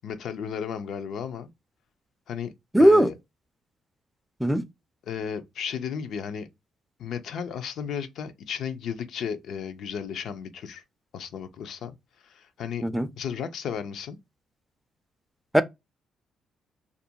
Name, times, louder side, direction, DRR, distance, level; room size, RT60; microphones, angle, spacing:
voice 1, 0.0-1.5 2.3-2.5 2.8-3.1 5.1-6.5 7.0-10.8 11.1-11.9 12.2-12.8 13.2-14.2, left 7 dB, 75° left, 0.4 m, -34 dB
voice 2, 2.7-3.1 4.4-4.6 12.8-13.1 15.5-15.6, equal, 5° right, 0.3 m, -18 dB
2.4 x 2.1 x 2.7 m
cardioid pair, 90°, 0 cm